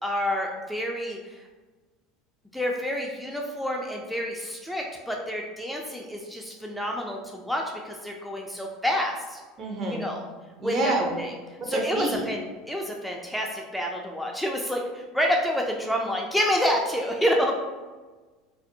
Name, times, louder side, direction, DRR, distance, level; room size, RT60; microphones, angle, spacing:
voice 1, 0.0-1.4 2.5-9.4 9.9-10.3 10.6-11.3 11.6-12.4 12.7-17.5, equal, ahead, 0 dB, 0.3 m, -28 dB
voice 2, 9.6-10.0 10.6-11.1 11.6-12.2, right 2 dB, 40° right, 1 dB, 0.6 m, -27 dB
2.5 x 2.0 x 2.7 m, 1.3 s
hypercardioid pair, 80°, 0 cm